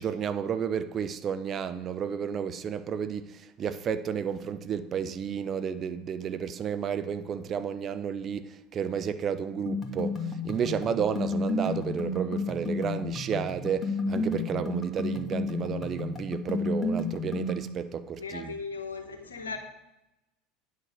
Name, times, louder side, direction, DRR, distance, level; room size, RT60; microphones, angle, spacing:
voice 1, 0.0-18.6, right 7 dB, 35° right, 0.6 m, -32 dB
sound 1, 9.7-17.7, left 3 dB, 20° left, 1.8 m, -32 dB
voice 2, 18.2-19.6, left 4 dB, 75° left, 1.2 m, -37 dB
9.3 x 6.3 x 6.4 m
figure-of-eight pair, 70°, 0 cm